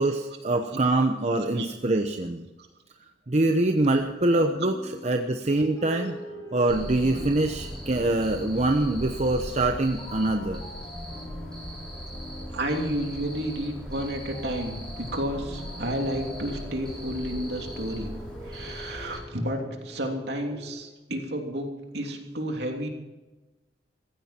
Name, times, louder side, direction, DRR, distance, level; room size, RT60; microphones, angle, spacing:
voice 1, 0.0-2.5 3.3-6.2 6.5-10.6, right 2 dB, 40° right, 5 dB, 0.9 m, -24 dB
voice 2, 1.3-1.7 4.5-4.7 12.5-18.1 18.5-22.9, right 1 dB, 70° right, 2 dB, 3.1 m, -31 dB
sound 1, 3.6-20.7, left 1 dB, 25° left, 6.3 m, -45 dB
Cricket, 6.7-19.2, equal, 5° left, 4.9 m, -39 dB
15.5 x 15.0 x 4.4 m, 1.1 s
head